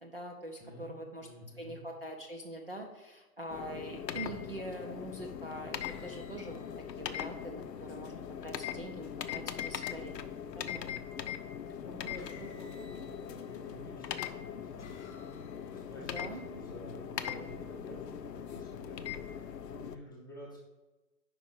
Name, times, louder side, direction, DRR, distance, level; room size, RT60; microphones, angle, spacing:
voice 1, 0.0-1.3 1.6-6.7 7.0-10.9 16.1-16.4, right 1 dB, 40° right, 0 dB, 0.5 m, -44 dB
voice 2, 0.6-1.9 11.8-15.1 15.7-20.6, equal, 15° left, -6 dB, 0.7 m, -50 dB
sound 1, 3.5-20.0, left 8 dB, 90° left, 0.7 m, -41 dB
sound 2, 5.8-7.8 10.0-10.6 11.6-11.8 12.2-13.8 14.4-16.1, left 4 dB, 45° left, 0.7 m, -58 dB
5.2 x 4.7 x 5.9 m, 1.1 s
hypercardioid pair, 170°, 48 cm